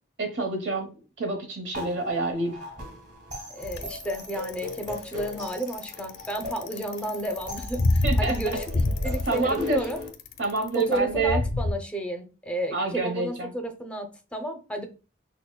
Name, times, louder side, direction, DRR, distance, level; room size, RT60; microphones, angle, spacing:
voice 1, 0.2-0.9 1.2-2.5 8.0-8.6 9.2-9.8 10.4-11.4 12.7-13.5, right 3 dB, 70° right, 1.1 m, -27 dB
sound 1, 1.7-10.1, left 2 dB, 40° right, 1.5 m, -38 dB
voice 2, 3.5-8.7 9.0-10.0 10.7-14.9, right 1 dB, 5° left, 0.5 m, -32 dB
Bicycle, 3.6-11.7, left 2 dB, 80° left, 0.5 m, -27 dB
5.8 x 2.1 x 2.2 m
head